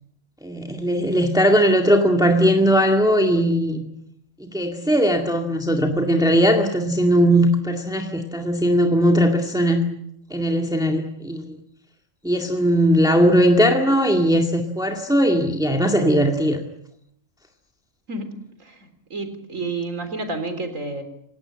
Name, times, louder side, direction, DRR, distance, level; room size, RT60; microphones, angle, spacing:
voice 1, 0.4-3.9 4.4-9.8 10.3-11.6 12.2-16.6, equal, 5° right, 2 dB, 2.0 m, -19 dB
voice 2, 18.6-21.0, right 3 dB, 90° right, 8 dB, 4.1 m, -30 dB
28.0 x 18.0 x 8.8 m, 0.75 s
omnidirectional pair, 1.3 m